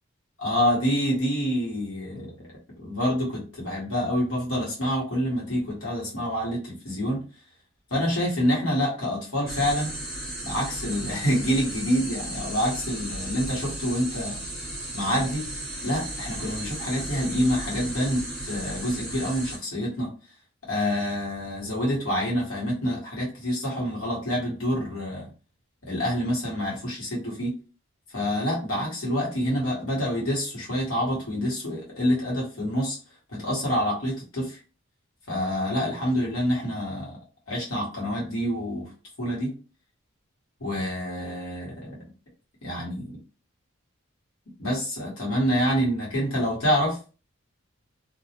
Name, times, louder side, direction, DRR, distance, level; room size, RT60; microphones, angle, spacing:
voice 1, 0.4-2.5 2.8-7.2 7.9-9.9 10.4-14.4 14.9-15.5 15.8-20.1 20.7-25.3 25.8-27.6 28.1-33.0 33.3-34.6 35.3-37.2 37.5-38.9 39.2-39.6 40.6-42.0 42.6-43.2 44.6-47.0, equal, 90° left, -3 dB, 1.2 m, -27 dB
sound 1, 9.5-19.6, right 1 dB, ahead, 0.9 m, -35 dB
2.4 x 2.0 x 2.8 m, 0.35 s
head